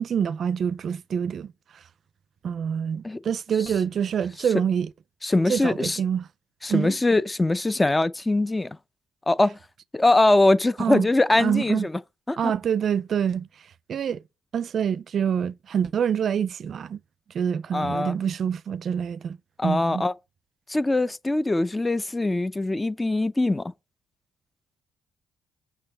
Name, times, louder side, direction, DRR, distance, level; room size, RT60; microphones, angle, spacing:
voice 1, 0.0-1.5 2.4-4.9 5.5-6.3 6.7-6.9 10.8-11.1 11.4-11.9 12.4-13.5 13.9-14.2 14.5-17.0 17.3-19.4 19.6-20.1, right 8 dB, 60° right, 0.5 m, -26 dB
voice 2, 5.2-6.0 6.6-8.8 9.3-9.6 9.9-12.0 12.3-12.5 17.7-18.2 19.6-20.1 20.7-23.7, left 2 dB, 15° left, 0.6 m, -22 dB
6.8 x 6.0 x 5.2 m
cardioid pair, 90°, 0 cm